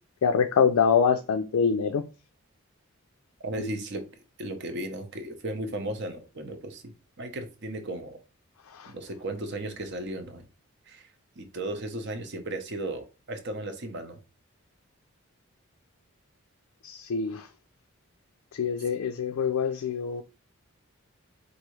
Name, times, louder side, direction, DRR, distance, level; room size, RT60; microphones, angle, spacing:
voice 1, 0.2-2.0 3.6-3.7 8.7-8.9 16.8-17.5 18.5-20.2, left 6 dB, 70° left, 0.3 m, -25 dB
voice 2, 3.4-4.1 4.4-8.2 8.9-10.4 10.9-11.1 11.4-14.2, right 1 dB, 50° right, 0.7 m, -35 dB
4.6 x 2.6 x 3.0 m
head